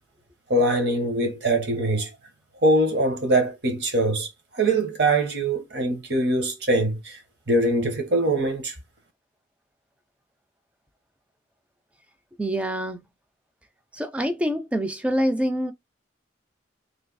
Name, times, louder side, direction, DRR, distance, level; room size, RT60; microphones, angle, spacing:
voice 1, 0.5-2.1 2.6-7.2 7.5-8.7, right 1 dB, 60° right, 1.0 m, -23 dB
voice 2, 12.4-13.0 13.9-15.7, equal, 5° right, 0.4 m, -25 dB
3.3 x 2.6 x 4.0 m
head